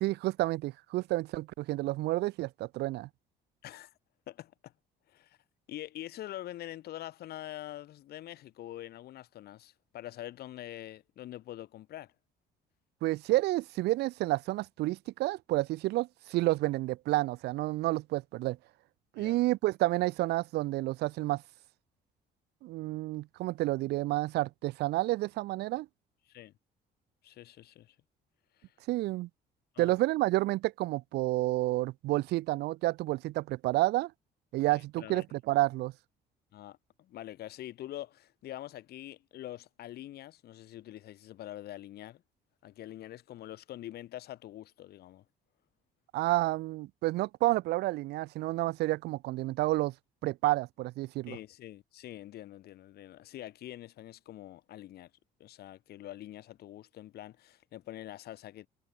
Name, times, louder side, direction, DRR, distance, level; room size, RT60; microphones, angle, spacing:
voice 1, 0.0-3.1 13.0-18.6 19.2-21.4 22.6-25.9 28.9-29.3 29.8-34.1 34.5-35.9 46.1-49.9 50.2-51.4, right 18 dB, 80° right, 1.0 m, -30 dB
voice 2, 3.6-3.9 4.3-4.7 5.1-5.4 5.7-12.1 19.2-19.4 26.3-26.5 27.2-28.0 28.5-28.7 29.7-29.9 34.7-35.2 36.5-42.2 42.6-45.2 51.3-55.1 55.4-58.7, left 13 dB, 70° left, 6.5 m, -45 dB
cardioid pair, 110°, 17 cm